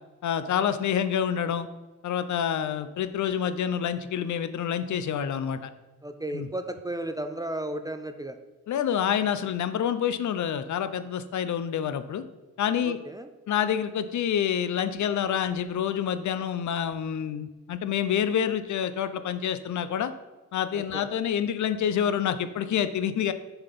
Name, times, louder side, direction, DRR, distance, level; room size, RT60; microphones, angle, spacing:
voice 1, 0.2-1.7 2.0-5.7 6.3-6.5 8.7-12.2 12.6-13.0 13.5-20.1 20.5-23.3, left 9 dB, 75° left, 12 dB, 0.6 m, -27 dB
voice 2, 6.0-8.4 12.8-13.3 20.7-21.1, right 1 dB, 15° right, 8 dB, 0.3 m, -34 dB
6.9 x 5.9 x 5.3 m, 1.2 s
wide cardioid pair, 170°, 29 cm